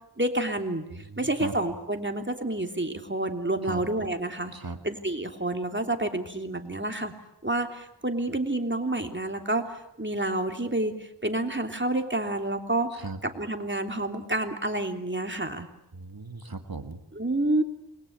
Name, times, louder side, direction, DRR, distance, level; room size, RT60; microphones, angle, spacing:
voice 1, 0.2-4.5 4.8-7.1 7.4-13.0 13.3-15.7 17.1-17.6, right 1 dB, 25° right, 5 dB, 3.2 m, -29 dB
voice 2, 0.9-1.5 3.6-3.8 4.5-4.8 13.0-13.2 15.9-17.0, right 3 dB, 60° right, 7 dB, 1.9 m, -38 dB
28.0 x 21.5 x 8.8 m, 0.82 s
wide cardioid pair, 40°, 41 cm